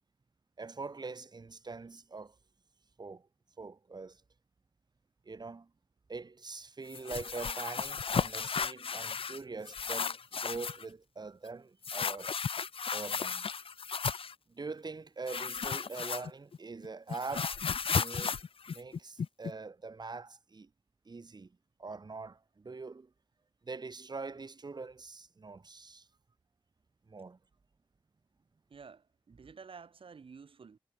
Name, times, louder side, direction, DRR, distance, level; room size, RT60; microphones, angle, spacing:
voice 1, 0.6-2.4 3.0-3.3 3.6-4.2 5.2-5.7 6.1-12.3 12.9-13.5 14.5-18.4 18.7-20.7 21.0-23.1 23.6-26.1 27.1-27.4, right 4 dB, 50° right, 7.8 m, -43 dB
sound 1, 6.9-9.4 9.7-10.8 11.8-14.3 15.3-16.6 16.8-19.5, left 6 dB, 80° left, 1.7 m, -34 dB
voice 2, 28.7-30.8, right 5 dB, 75° right, 4.8 m, -51 dB
wide cardioid pair, 90°, 9 cm